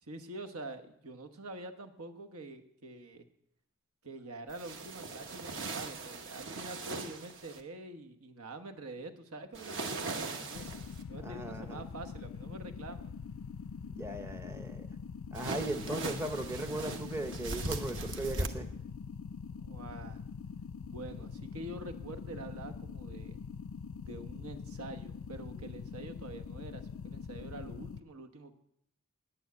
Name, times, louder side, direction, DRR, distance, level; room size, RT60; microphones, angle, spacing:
voice 1, 0.0-3.3 4.0-10.7 11.1-13.1 19.6-20.2 20.8-23.4 24.0-28.5, right 2 dB, 80° right, 6 dB, 1.2 m, -46 dB
sound 1, 4.5-7.6 9.5-11.0 15.3-18.5, right 3 dB, 55° right, 1.1 m, -39 dB
sound 2, 10.5-28.0, left 6 dB, 70° left, 0.4 m, -44 dB
voice 2, 11.2-11.8 13.9-14.9 15.3-18.7, right 1 dB, 10° right, 7 dB, 0.6 m, -38 dB
10.0 x 9.0 x 8.2 m, 0.76 s
head